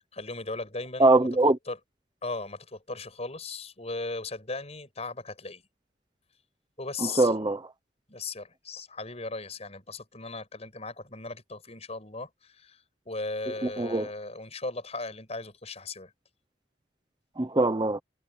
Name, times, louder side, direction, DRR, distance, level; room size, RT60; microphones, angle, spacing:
voice 1, 0.0-1.8 2.2-5.6 6.8-7.3 8.1-16.1, left 3 dB, 35° left, 6.6 m, -37 dB
voice 2, 1.0-1.6 7.0-7.6 13.6-14.1 17.4-18.0, right 2 dB, 25° right, 0.9 m, -22 dB
head